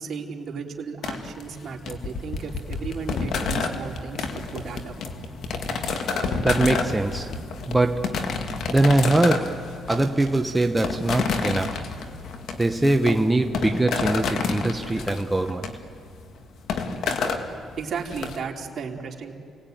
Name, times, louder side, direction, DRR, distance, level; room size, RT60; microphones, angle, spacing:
voice 1, 0.0-4.9 17.8-19.3, right 5 dB, 55° right, 0 dB, 3.3 m, -34 dB
sound 1, 1.0-18.4, left 4 dB, 70° left, 2.1 m, -29 dB
voice 2, 6.4-7.3 7.7-8.3 8.7-11.8 12.6-15.7, right 2 dB, 10° right, 5 dB, 0.9 m, -22 dB
29.0 x 19.5 x 9.2 m, 2.4 s
cardioid pair, 90°, 0 cm